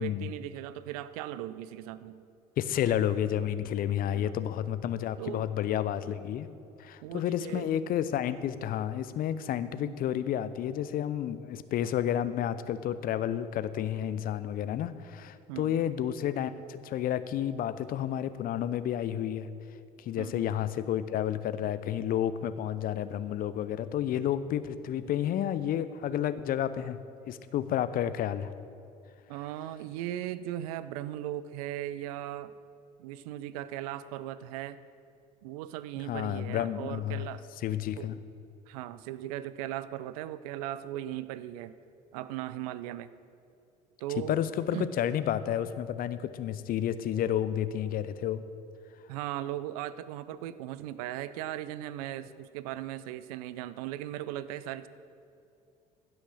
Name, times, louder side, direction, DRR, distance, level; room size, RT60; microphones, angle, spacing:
voice 1, 0.0-2.2 4.1-4.3 5.2-5.5 7.0-7.7 9.7-10.0 15.5-15.9 20.2-20.5 29.3-32.5 33.0-34.8 35.4-37.4 37.9-38.1 38.7-41.7 42.1-43.1 44.0-44.4 44.7-44.9 49.1-54.9, right 13 dB, 70° right, 15 dB, 0.5 m, -38 dB
voice 2, 2.6-6.5 6.8-19.5 20.0-27.0 27.3-28.5 36.1-37.2 37.6-38.2 44.3-48.4, left 10 dB, 45° left, 14 dB, 0.7 m, -31 dB
15.5 x 6.4 x 6.4 m, 2.6 s
hypercardioid pair, 60°, 20 cm